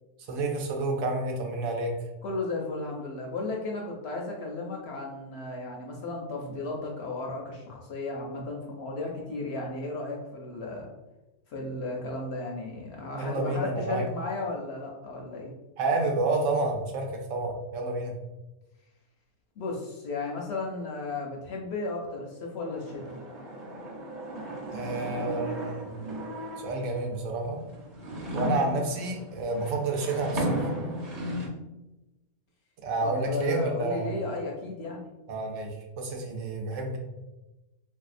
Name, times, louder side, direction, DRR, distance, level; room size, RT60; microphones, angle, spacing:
voice 1, 0.3-1.9 13.1-14.1 15.8-18.1 24.7-25.9 26.6-27.6 28.3-30.6 32.8-34.2 35.3-37.0, right 2 dB, 70° right, 2 dB, 0.9 m, -29 dB
voice 2, 2.2-10.9 11.5-15.5 19.6-23.1 33.0-35.1, left 3 dB, 65° left, -1 dB, 0.7 m, -34 dB
sound 1, 22.7-27.0 27.6-31.5, equal, 45° right, 0.6 m, -35 dB
3.3 x 2.7 x 2.4 m, 1.0 s
omnidirectional pair, 1.5 m